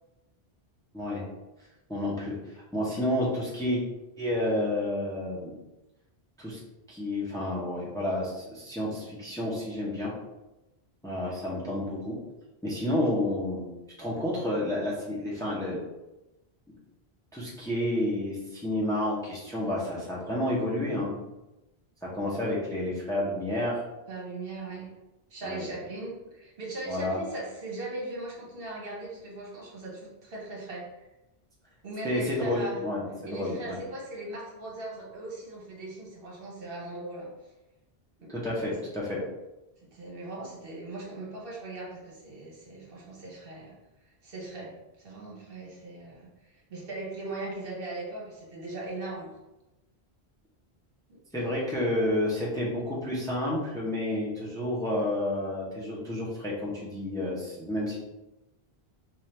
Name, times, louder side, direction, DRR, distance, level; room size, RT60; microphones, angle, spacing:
voice 1, 1.9-2.3 2.7-3.8 4.2-5.6 6.4-6.6 6.9-10.1 11.0-12.1 12.6-13.7 14.0-15.8 17.3-21.2 22.0-23.8 25.4-25.7 26.9-27.2 32.0-33.0 33.3-33.8 38.3-39.2 51.3-58.0, left 1 dB, 5° left, -5 dB, 0.7 m, -30 dB
voice 2, 24.1-24.9 25.3-31.0 31.8-32.8 33.2-37.3 38.2-38.3 39.8-43.7 44.2-49.3 51.1-51.2 51.5-51.6, right 2 dB, 60° right, -3 dB, 1.1 m, -39 dB
4.4 x 2.4 x 3.3 m, 0.99 s
omnidirectional pair, 1.1 m